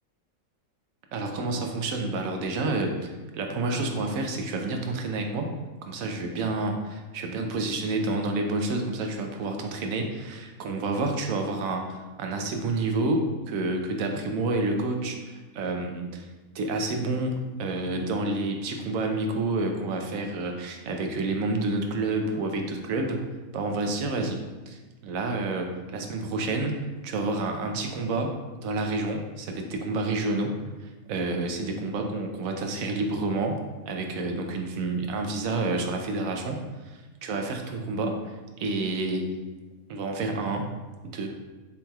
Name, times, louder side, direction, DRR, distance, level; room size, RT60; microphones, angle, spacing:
voice 1, 1.1-5.5 5.8-16.3 16.5-23.3 23.5-26.8 27.0-38.3 38.6-39.3 39.9-40.8 41.0-41.3, right 2 dB, 75° right, 3 dB, 1.0 m, -29 dB
7.0 x 3.1 x 2.3 m, 1.2 s
omnidirectional pair, 1.5 m